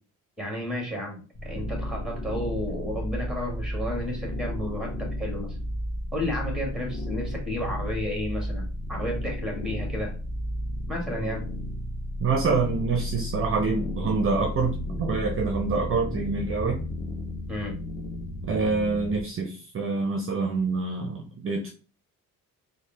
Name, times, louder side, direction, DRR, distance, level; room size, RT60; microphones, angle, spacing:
voice 1, 0.4-5.6 6.1-10.1 10.9-11.4 17.5-17.7, left 1 dB, ahead, 0 dB, 1.8 m, -32 dB
sound 1, 1.3-19.2, left 1 dB, 20° left, 0.7 m, -33 dB
voice 2, 12.2-16.8 18.4-21.7, right 4 dB, 40° right, 2 dB, 0.6 m, -26 dB
3.6 x 2.2 x 3.3 m, 0.37 s
cardioid pair, 90°, 35 cm